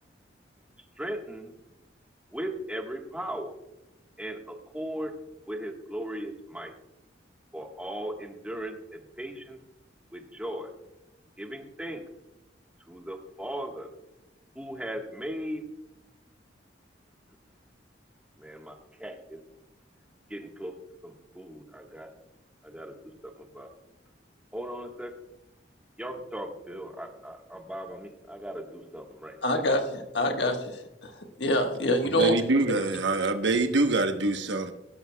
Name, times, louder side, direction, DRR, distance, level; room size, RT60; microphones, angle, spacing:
voice 1, 1.0-1.5 2.3-3.5 4.2-5.1 5.5-6.7 7.5-9.6 10.1-10.7 11.4-12.0 12.9-13.9 14.5-15.6 18.4-19.4 20.3-20.7 21.0-22.1 22.6-22.9 23.2-23.7 24.5-25.1 26.0-29.6, right 1 dB, 5° right, 2 dB, 1.3 m, -37 dB
voice 2, 29.4-31.1 31.4-32.3, equal, 65° left, 4 dB, 1.4 m, -26 dB
voice 3, 32.0-34.7, right 2 dB, 80° right, 7 dB, 1.0 m, -25 dB
16.0 x 12.0 x 2.2 m, 0.89 s
head